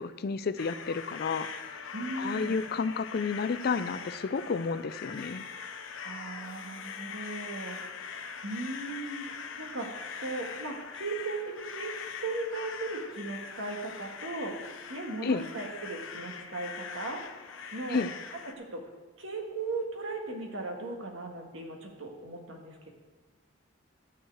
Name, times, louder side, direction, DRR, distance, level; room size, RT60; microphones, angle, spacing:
voice 1, 0.0-1.8 2.2-5.4 15.2-15.4 17.9-18.1, left 5 dB, 50° left, 13 dB, 0.4 m, -31 dB
sound 1, 0.6-18.5, left 6 dB, 65° left, 0.8 m, -42 dB
voice 2, 1.9-2.6 6.0-11.9 12.2-14.6 14.9-17.2 17.7-18.0 18.4-18.9 19.2-22.9, right 3 dB, 65° right, 1 dB, 1.7 m, -37 dB
12.5 x 4.7 x 7.9 m, 1.4 s
head